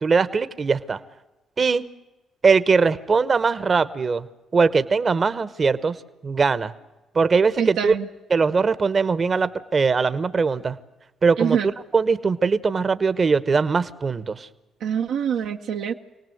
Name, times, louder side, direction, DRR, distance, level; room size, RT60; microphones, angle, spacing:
voice 1, 0.0-1.0 1.6-1.9 2.4-4.3 4.5-6.0 6.2-6.7 7.1-7.9 8.3-10.8 11.2-11.6 11.9-14.5, right 4 dB, 45° right, 14 dB, 1.1 m, -20 dB
voice 2, 7.6-8.1 11.4-11.7 14.8-15.9, right 8 dB, 75° right, 3 dB, 0.9 m, -25 dB
26.5 x 18.5 x 7.9 m, 1.1 s
supercardioid pair, 55°, 0 cm